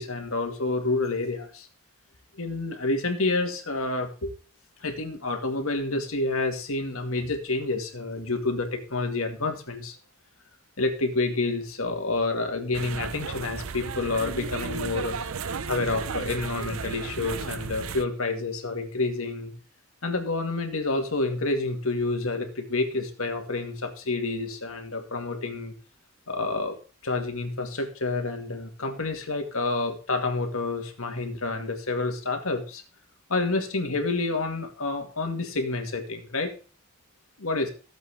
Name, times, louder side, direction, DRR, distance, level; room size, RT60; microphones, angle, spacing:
voice 1, 0.0-1.7 2.4-4.3 4.8-10.0 10.8-15.2 15.7-19.5 20.0-25.7 26.3-26.8 27.0-32.8 33.3-36.5 37.4-37.7, left 3 dB, 90° left, 4 dB, 2.3 m, -28 dB
sound 1, 12.7-18.0, right 5 dB, 90° right, 0.7 m, -34 dB
14.5 x 7.9 x 3.7 m, 0.37 s
head